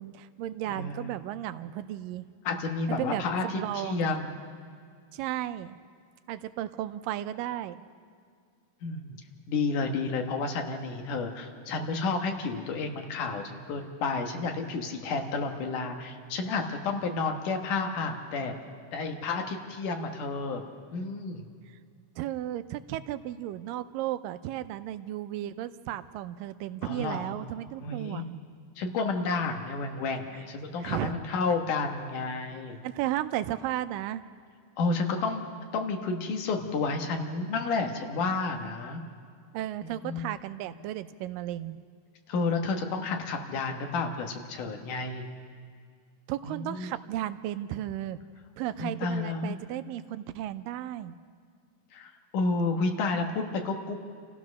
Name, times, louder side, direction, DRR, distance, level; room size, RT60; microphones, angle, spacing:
voice 1, 0.0-2.3 3.0-4.2 5.1-5.8 6.3-7.9 22.2-28.4 30.8-31.1 32.8-34.2 39.5-41.8 46.3-48.2 48.6-51.2, right 13 dB, 85° right, 12 dB, 2.3 m, -34 dB
voice 2, 0.7-1.1 2.4-4.4 8.8-9.2 9.5-18.5 18.9-20.6 20.9-21.5 26.8-27.4 27.8-28.2 28.8-32.8 34.8-35.5 35.7-39.0 39.8-40.3 42.3-45.3 46.4-46.9 48.8-49.5 51.9-54.0, left 4 dB, 70° left, 4 dB, 2.8 m, -31 dB
28.5 x 15.0 x 6.3 m, 2.2 s
omnidirectional pair, 3.9 m